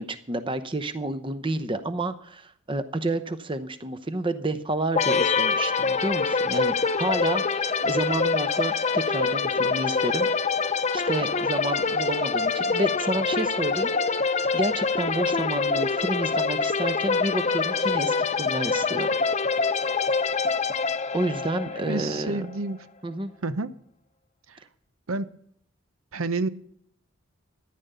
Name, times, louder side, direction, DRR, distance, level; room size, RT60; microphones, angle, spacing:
voice 1, 0.0-10.3 10.9-19.1 21.1-22.5 23.0-23.3, right 2 dB, 25° right, 0.8 m, -30 dB
sound 1, 5.0-22.6, left 4 dB, 35° left, 0.7 m, -25 dB
voice 2, 21.8-22.9 23.4-23.7 24.5-24.6 25.1-25.3 26.1-26.5, right 3 dB, 80° right, 0.8 m, -29 dB
14.0 x 10.5 x 6.8 m
head